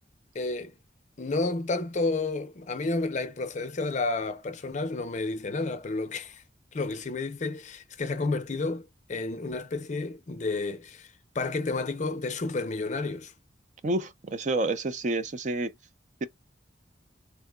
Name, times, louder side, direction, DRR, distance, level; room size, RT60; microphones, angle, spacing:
voice 1, 0.3-0.8 1.2-6.4 6.7-11.1 11.3-13.3, left 3 dB, 40° left, 0.5 m, -31 dB
voice 2, 13.8-15.7, right 2 dB, 40° right, 0.4 m, -29 dB
3.6 x 2.0 x 2.2 m
head